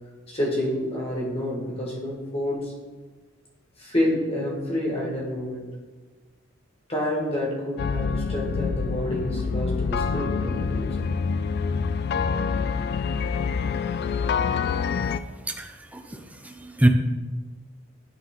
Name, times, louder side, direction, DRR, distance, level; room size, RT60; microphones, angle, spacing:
voice 1, 0.3-2.7 3.8-5.8 6.9-11.1, left 1 dB, 30° left, -3 dB, 2.0 m, -28 dB
sound 1, 7.8-15.2, left 5 dB, 55° left, 0.3 m, -26 dB
voice 2, 15.5-16.9, right 1 dB, 5° right, 5 dB, 0.6 m, -25 dB
11.0 x 3.8 x 3.8 m, 1.3 s
head